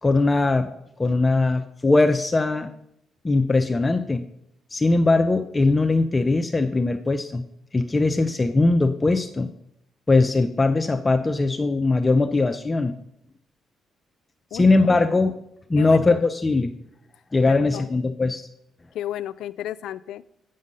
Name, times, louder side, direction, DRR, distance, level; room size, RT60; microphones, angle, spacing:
voice 1, 0.0-0.7 1.0-2.7 3.2-4.2 4.7-7.4 7.7-9.5 10.1-13.0 14.5-15.4 15.7-16.7 17.3-18.4, left 3 dB, 20° left, 7 dB, 0.5 m, -20 dB
voice 2, 14.5-14.9 15.8-16.1 17.5-17.9 18.9-20.2, left 12 dB, 80° left, 15 dB, 0.3 m, -33 dB
8.1 x 6.4 x 5.4 m, 0.78 s
cardioid pair, 90°, 0 cm